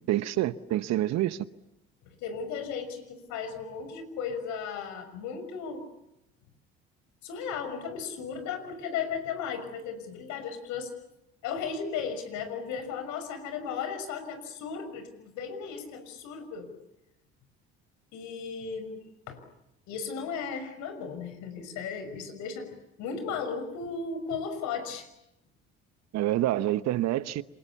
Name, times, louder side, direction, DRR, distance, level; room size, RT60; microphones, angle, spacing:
voice 1, 0.1-1.5 26.1-27.4, right 14 dB, 55° right, 1.1 m, -27 dB
voice 2, 2.2-5.8 7.2-10.9 11.4-16.7 18.1-19.4 19.9-22.7 23.0-25.1, left 6 dB, 65° left, 6.1 m, -35 dB
28.5 x 27.5 x 7.1 m
hypercardioid pair, 60°, 31 cm